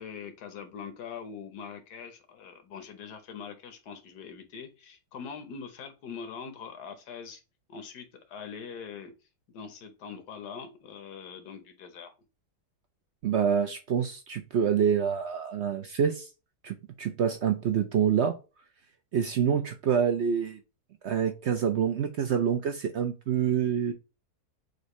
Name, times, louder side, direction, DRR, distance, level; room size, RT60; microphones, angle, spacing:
voice 1, 0.0-7.4 7.7-9.1 9.5-12.1, left 6 dB, 90° left, 1.6 m, -43 dB
voice 2, 13.2-16.3 16.6-18.4 19.1-20.6 21.0-23.9, right 8 dB, 60° right, 0.7 m, -26 dB
6.3 x 2.7 x 3.1 m
omnidirectional pair, 1.7 m